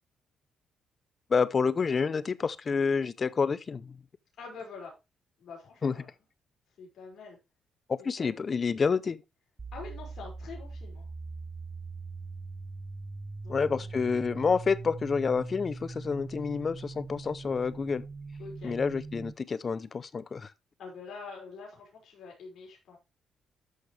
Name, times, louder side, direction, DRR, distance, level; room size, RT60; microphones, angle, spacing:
voice 1, 1.3-4.0 5.8-5.9 7.9-9.2 13.5-18.0 18.6-20.5, left 5 dB, 40° left, 0.7 m, -28 dB
voice 2, 4.4-4.9 5.4-6.1 6.8-7.4 8.0-8.4 9.7-11.1 13.4-14.0 18.4-18.7 20.8-23.0, left 4 dB, 65° left, 5.7 m, -45 dB
sound 1, 9.6-19.3, right 3 dB, 30° right, 0.6 m, -41 dB
13.0 x 5.8 x 3.3 m
cardioid pair, 90°, 0 cm